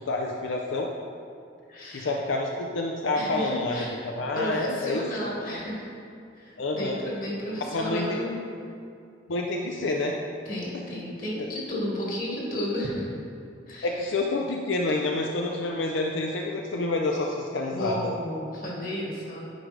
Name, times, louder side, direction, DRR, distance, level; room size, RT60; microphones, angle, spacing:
voice 1, 0.1-0.9 1.9-3.8 4.2-5.0 5.5-5.6 6.6-7.0 7.7-8.2 9.3-10.2 13.8-18.1, left 2 dB, 85° left, 0 dB, 0.5 m, -28 dB
voice 2, 1.7-2.2 3.0-5.9 6.4-8.4 10.4-13.1 13.7-13.9 17.7-19.4, left 1 dB, 45° left, -4 dB, 1.6 m, -33 dB
9.9 x 5.0 x 3.3 m, 2.5 s
head